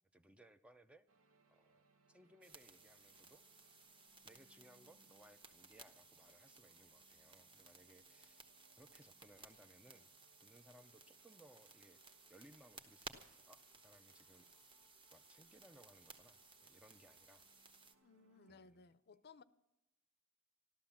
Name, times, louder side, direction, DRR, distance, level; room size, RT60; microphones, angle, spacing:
voice 1, 0.1-1.1 1.5-1.8 2.1-3.7 4.2-10.1 10.4-12.0 12.3-14.5 15.1-17.5 18.5-18.9, right 1 dB, 5° right, 0.5 m, -65 dB
sound 1, 1.1-18.7, right 3 dB, 65° right, 1.4 m, -75 dB
sound 2, 2.4-17.9, right 3 dB, 25° right, 1.2 m, -60 dB
voice 2, 18.0-19.4, left 4 dB, 50° left, 0.6 m, -61 dB
14.0 x 12.5 x 7.2 m
head